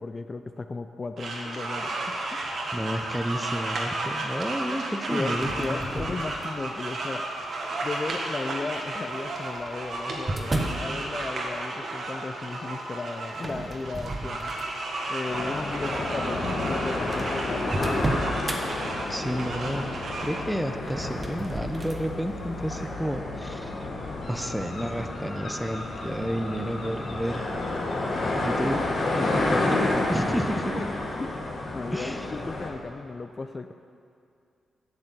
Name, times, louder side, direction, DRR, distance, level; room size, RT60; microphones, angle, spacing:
voice 1, 0.0-2.4 5.1-7.3 7.8-14.5 15.1-18.6 29.3-29.8 30.8-30.9 31.2-33.7, left 3 dB, 35° left, 8 dB, 0.3 m, -35 dB
sound 1, 1.2-20.4, right 2 dB, 65° right, 1.5 m, -33 dB
voice 2, 2.7-6.2 19.1-23.7 24.3-27.5 28.4-28.8 29.1-29.8 30.1-30.9 31.9-32.3, equal, ahead, 7 dB, 0.6 m, -31 dB
sound 2, 5.3-6.8 7.4-7.9 9.0-10.9 13.3-14.9 15.4-15.6 16.4-16.5 16.7-16.8 17.1-18.6 20.7-22.0, right 2 dB, 30° right, 1.0 m, -33 dB
sound 3, 15.3-32.7, left 2 dB, 55° left, 1.4 m, -30 dB
8.4 x 6.5 x 7.4 m, 2.4 s
cardioid pair, 85°, 0 cm